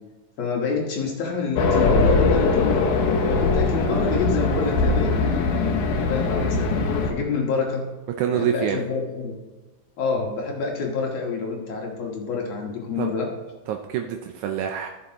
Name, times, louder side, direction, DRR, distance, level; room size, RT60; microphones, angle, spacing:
voice 1, 0.4-6.8 7.1-7.9 8.3-9.3 10.0-13.3, left 4 dB, 60° left, 0 dB, 2.4 m, -27 dB
Race car auto racing, 1.6-7.1, left 3 dB, 90° left, 2.5 m, -21 dB
voice 2, 8.2-8.8 13.0-13.1 13.7-14.9, right 9 dB, 80° right, 4 dB, 1.9 m, -26 dB
13.5 x 6.8 x 2.9 m, 1.2 s
omnidirectional pair, 3.5 m